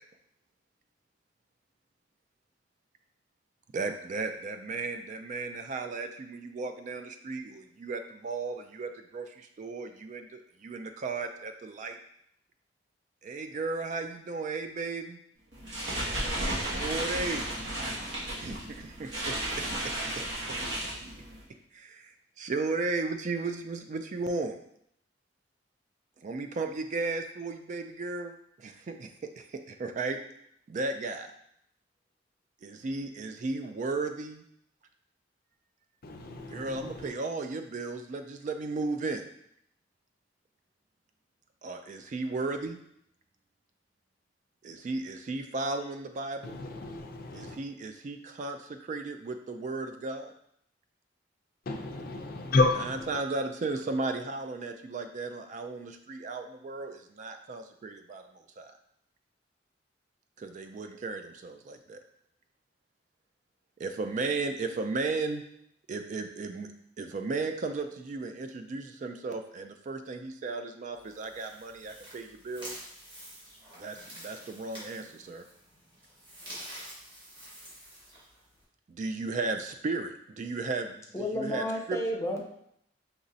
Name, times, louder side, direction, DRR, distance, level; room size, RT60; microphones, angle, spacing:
voice 1, 3.7-12.0 13.2-15.2 16.7-17.5 18.3-19.7 21.7-24.6 26.2-30.2 30.7-31.3 32.6-34.4 36.5-39.2 41.6-42.8 44.6-46.6 47.3-50.3 52.8-58.7 60.4-62.0 63.8-65.4 65.9-66.7 67.0-72.9 73.8-75.4 78.9-82.0, right 3 dB, 40° right, 6 dB, 0.3 m, -35 dB
sound 1, 15.5-21.4, right 1 dB, 70° right, 1.7 m, -34 dB
voice 2, 36.0-37.1 46.4-47.6 51.7-53.2, left 3 dB, 55° left, 4 dB, 0.5 m, -30 dB
sound 2, 70.9-78.6, equal, 25° right, 1.4 m, -48 dB
voice 3, 81.1-82.4, equal, 15° left, 0 dB, 0.6 m, -31 dB
5.2 x 3.0 x 2.7 m, 0.72 s
head